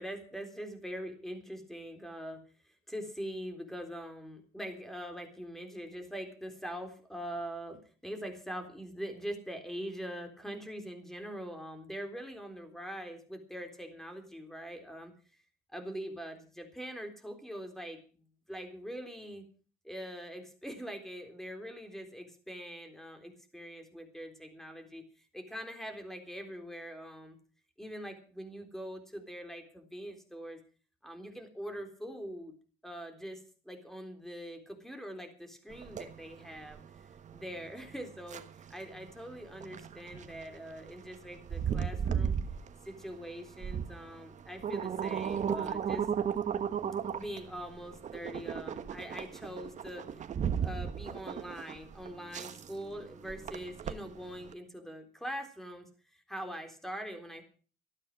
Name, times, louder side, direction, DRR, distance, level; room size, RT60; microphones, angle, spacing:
voice 1, 0.0-15.1 15.7-19.4 19.8-25.1 25.3-27.4 27.8-30.6 31.0-32.5 32.8-36.8 37.3-38.4 38.7-42.4 42.8-46.1 47.1-50.1 50.6-57.4, equal, ahead, 6 dB, 3.7 m, -43 dB
sound 1, 35.7-54.5, right 8 dB, 45° right, 1.3 m, -36 dB
13.5 x 12.0 x 6.2 m, 0.39 s
cardioid pair, 110°, 17 cm